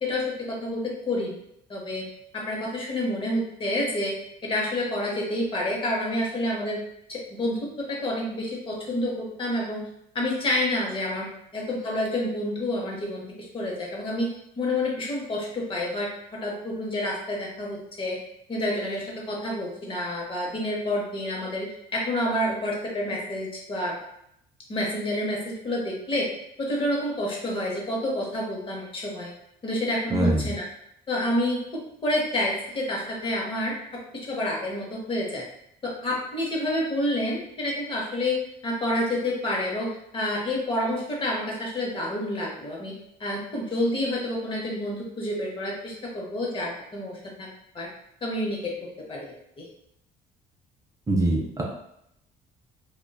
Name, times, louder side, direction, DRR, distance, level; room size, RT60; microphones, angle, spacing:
voice 1, 0.0-1.4 1.7-2.0 2.3-4.1 4.5-6.8 7.1-9.8 10.1-16.1 16.4-18.2 18.5-21.7 21.9-24.0 24.7-26.3 26.6-29.3 29.6-30.7 31.1-31.6 32.0-35.4 35.8-42.9 43.2-47.9 48.2-48.7 49.1-49.6, left 1 dB, 30° left, -2 dB, 0.7 m, -28 dB
voice 2, 30.1-30.4 51.1-51.6, right 1 dB, 20° right, -2 dB, 0.4 m, -23 dB
2.6 x 2.2 x 2.2 m, 0.77 s
cardioid pair, 110°, 17 cm